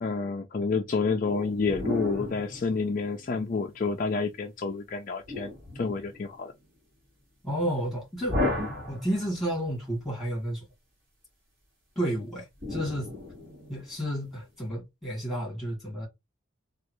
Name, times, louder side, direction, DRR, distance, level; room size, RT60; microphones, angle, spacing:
voice 1, 0.0-5.5 5.8-6.5, left 4 dB, 40° left, 0.4 m, -29 dB
sound 1, 1.2-3.5 5.2-6.5 8.3-9.6 12.6-14.0, left 2 dB, 45° right, 1.8 m, -34 dB
voice 2, 7.4-8.4 8.9-10.6 12.0-13.1 13.7-16.1, equal, ahead, 1.8 m, -31 dB
3.1 x 2.4 x 3.0 m
head